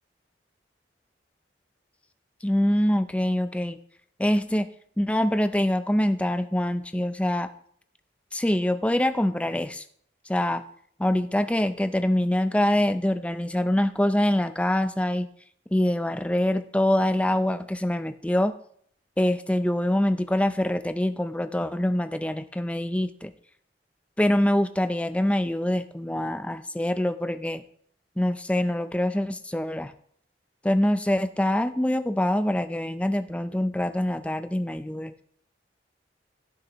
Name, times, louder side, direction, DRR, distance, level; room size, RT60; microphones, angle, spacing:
voice 1, 2.4-3.8 4.2-4.7 5.0-7.5 8.3-9.8 10.3-10.6 11.0-15.3 15.7-18.5 19.2-23.3 24.2-27.6 28.2-29.9 30.6-35.1, left 1 dB, 5° left, 10 dB, 0.4 m, -24 dB
15.5 x 6.4 x 3.0 m, 0.62 s
head